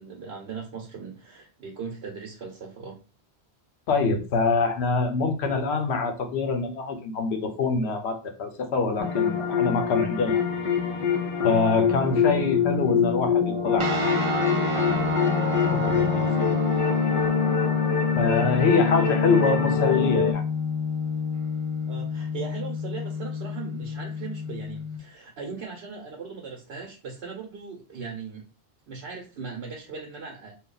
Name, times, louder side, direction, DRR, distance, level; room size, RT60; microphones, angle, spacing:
voice 1, 0.0-3.0 19.5-19.6 21.9-28.4 28.9-30.5, right 5 dB, 80° right, 0 dB, 1.0 m, -39 dB
voice 2, 3.9-10.4 11.4-14.3 14.7-15.0 15.4-16.8 18.2-20.4, left 4 dB, 85° left, 6 dB, 0.9 m, -25 dB
sound 1, 9.0-20.3, left 7 dB, 45° left, 0.5 m, -25 dB
sound 2, 13.8-25.0, left 4 dB, 40° right, 0.5 m, -27 dB
2.7 x 2.3 x 3.7 m, 0.34 s
omnidirectional pair, 1.1 m